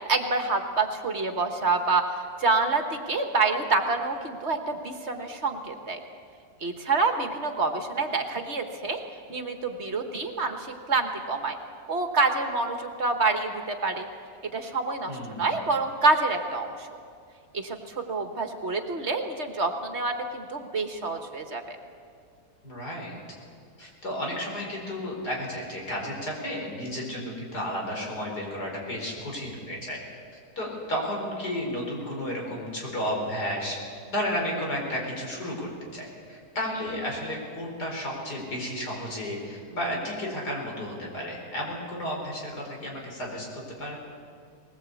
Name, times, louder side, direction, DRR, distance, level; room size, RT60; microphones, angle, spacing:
voice 1, 0.1-2.1 2.4-6.0 6.6-9.0 9.3-11.6 11.9-14.1 14.5-16.9 17.5-21.8, right 3 dB, 45° right, 6 dB, 1.6 m, -27 dB
voice 2, 15.1-15.7 22.6-23.1 23.8-30.0 30.6-33.8 34.1-43.5 43.8-44.0, equal, 90° left, -1 dB, 5.2 m, -32 dB
20.0 x 19.0 x 8.3 m, 2.2 s
omnidirectional pair, 1.7 m